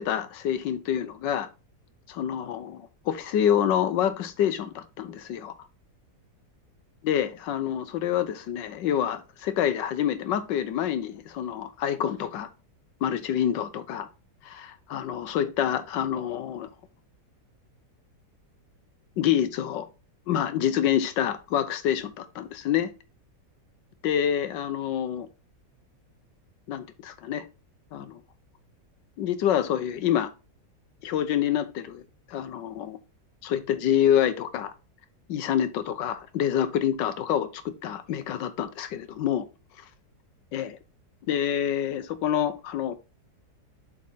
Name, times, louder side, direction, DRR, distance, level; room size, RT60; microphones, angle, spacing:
voice 1, 0.0-1.5 2.1-5.5 7.0-12.5 13.0-14.1 14.4-16.7 19.2-19.9 20.3-22.9 24.0-25.3 26.7-27.4 27.9-28.2 29.2-30.3 31.0-32.0 32.3-33.0 33.4-34.7 35.3-39.4 40.5-40.8 41.3-43.0, left 10 dB, 85° left, 1.5 m, -27 dB
7.5 x 4.3 x 3.9 m
omnidirectional pair, 1.9 m